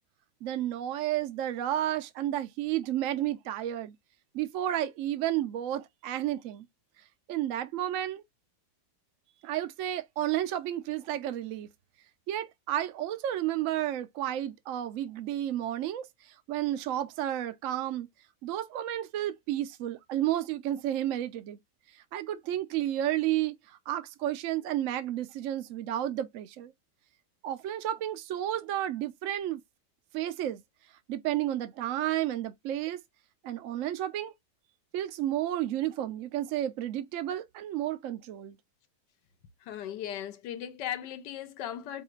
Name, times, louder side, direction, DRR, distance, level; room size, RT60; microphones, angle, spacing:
voice 1, 0.4-3.9 4.3-6.7 7.3-8.2 9.4-11.7 12.3-16.1 16.5-18.1 18.4-21.6 22.1-26.7 27.4-29.6 30.1-30.6 31.1-33.0 33.4-34.3 34.9-38.6, right 12 dB, 70° right, 0.7 m, -31 dB
voice 2, 39.7-42.0, left 10 dB, 85° left, 1.3 m, -37 dB
4.8 x 2.4 x 3.0 m
omnidirectional pair, 1.8 m